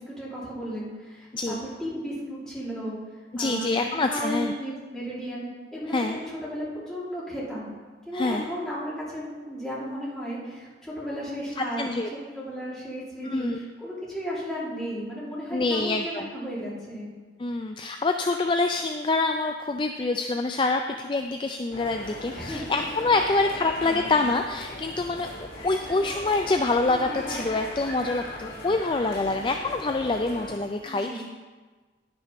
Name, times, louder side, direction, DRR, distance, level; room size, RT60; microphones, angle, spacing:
voice 1, 0.0-3.0 3.3-7.7 8.1-11.8 12.1-17.1 22.3-22.8 23.2-23.4 23.8-24.0 26.9-27.4 30.8-31.2, equal, 5° left, -9 dB, 3.3 m, -34 dB
voice 2, 3.3-4.5 5.9-6.2 8.1-8.5 11.8-12.1 13.2-13.6 15.5-16.2 17.4-25.3 25.6-31.2, left 3 dB, 25° left, 5 dB, 0.3 m, -26 dB
sound 1, 21.7-30.6, left 1 dB, 50° left, 3.2 m, -38 dB
9.9 x 6.1 x 5.9 m, 1.4 s
head